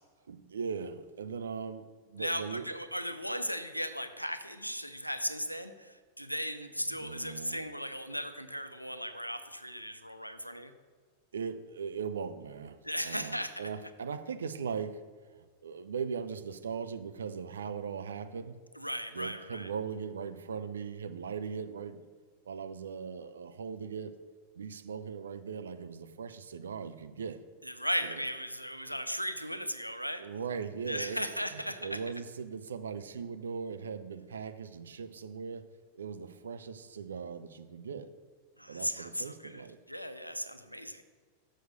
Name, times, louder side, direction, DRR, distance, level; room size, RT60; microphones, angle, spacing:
voice 1, 0.3-2.7 6.8-7.6 11.3-12.8 13.0-15.0 15.3-18.6 19.1-22.1 22.5-24.1 24.5-27.4 28.0-28.2 30.2-35.7 35.9-38.1 38.7-39.8, right 6 dB, 70° right, 10 dB, 0.5 m, -39 dB
voice 2, 2.2-10.7 12.8-13.7 18.8-19.7 27.7-30.3 30.8-32.0 38.6-41.0, equal, 90° left, 10 dB, 0.5 m, -37 dB
6.5 x 6.2 x 6.5 m, 1.5 s
figure-of-eight pair, 90°, 0 cm